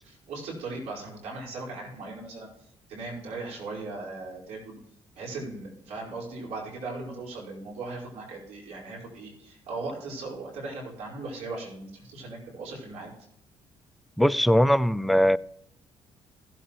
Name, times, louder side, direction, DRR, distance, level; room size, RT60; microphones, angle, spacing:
voice 1, 0.0-2.5 2.9-4.8 5.1-13.1, right 3 dB, 85° right, -3 dB, 5.0 m, -38 dB
voice 2, 14.2-15.4, equal, ahead, 14 dB, 0.4 m, -20 dB
15.5 x 8.1 x 3.1 m, 0.72 s
cardioid pair, 85°, 11 cm